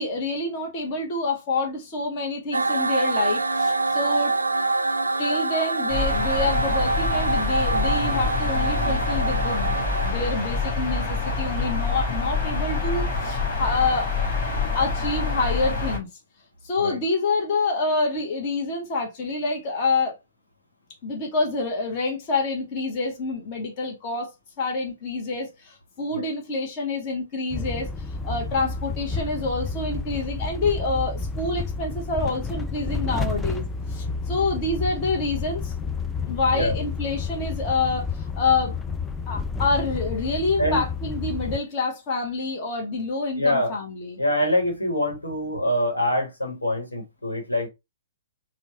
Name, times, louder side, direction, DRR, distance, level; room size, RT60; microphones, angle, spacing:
voice 1, 0.0-4.4 5.2-14.1 14.7-16.1 16.6-20.1 21.0-24.3 24.6-35.7 36.3-38.8 39.3-44.2, left 3 dB, 35° left, 1.1 m, -27 dB
sound 1, 2.5-10.1, right 3 dB, 75° right, 0.4 m, -25 dB
sound 2, 5.9-16.0, left 3 dB, 50° left, 1.3 m, -26 dB
sound 3, 27.5-41.6, left 4 dB, 10° left, 0.3 m, -30 dB
voice 2, 43.4-43.7 44.2-47.7, left 1 dB, 80° left, 1.3 m, -24 dB
4.3 x 2.3 x 2.9 m
figure-of-eight pair, 115°, 0 cm